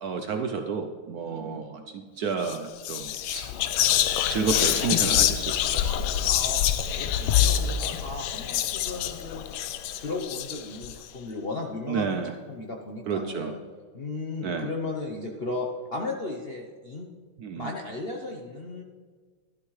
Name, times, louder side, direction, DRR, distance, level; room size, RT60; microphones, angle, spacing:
voice 1, 0.0-3.5 4.3-5.9 11.9-12.3 13.1-13.5 14.4-14.7 17.4-17.7, right 5 dB, 70° right, 6 dB, 0.9 m, -31 dB
voice 2, 1.3-1.6 6.2-6.6 7.0-13.6 13.9-17.1 17.5-18.8, left 2 dB, 50° left, 0 dB, 0.7 m, -35 dB
Whispering, 2.4-2.6 2.8-10.9, left 11 dB, 90° left, 1.4 m, -26 dB
12.5 x 11.5 x 3.2 m, 1.5 s
omnidirectional pair, 2.1 m